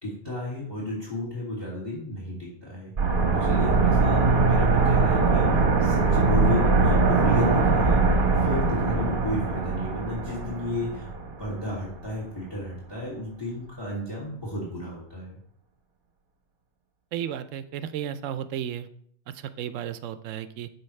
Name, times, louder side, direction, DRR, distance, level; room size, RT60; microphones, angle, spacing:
voice 1, 0.0-2.9 3.3-8.0 8.3-11.1 11.4-15.4, left 1 dB, 20° left, -5 dB, 2.5 m, -33 dB
sound 1, 3.0-11.7 12.0-12.1, right 3 dB, 50° right, 1.1 m, -22 dB
voice 2, 17.1-18.9 19.3-20.7, right 10 dB, 90° right, 12 dB, 1.0 m, -33 dB
13.0 x 4.8 x 3.2 m, 0.65 s
omnidirectional pair, 1.3 m